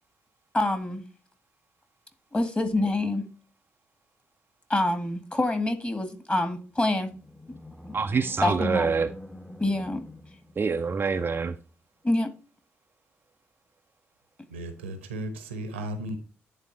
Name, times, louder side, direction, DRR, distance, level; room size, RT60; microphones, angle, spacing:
voice 1, 0.5-1.0 2.3-3.2 4.7-7.1 7.9-8.0 8.4-8.9 9.6-10.0 12.0-12.3, left 2 dB, 20° left, 2.1 m, -26 dB
Animal, 6.7-11.2, left 1 dB, 5° left, 1.0 m, -45 dB
voice 2, 7.9-9.1 10.6-11.5, right 5 dB, 35° right, 0.5 m, -26 dB
voice 3, 14.5-16.2, right 1 dB, 80° right, 1.0 m, -35 dB
10.5 x 4.2 x 4.1 m
figure-of-eight pair, 40°, 6 cm